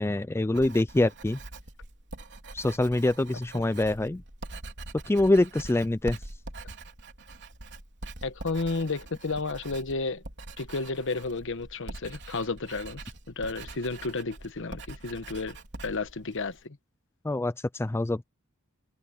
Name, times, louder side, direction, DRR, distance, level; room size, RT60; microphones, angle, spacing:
voice 1, 0.0-1.4 2.5-4.2 5.1-6.2 17.2-18.2, left 2 dB, 10° left, 0.3 m, -25 dB
Writing, 0.5-16.6, right 2 dB, 55° right, 3.7 m, -44 dB
voice 2, 8.2-10.2 10.6-13.0 13.3-16.8, left 3 dB, 60° left, 1.1 m, -32 dB
head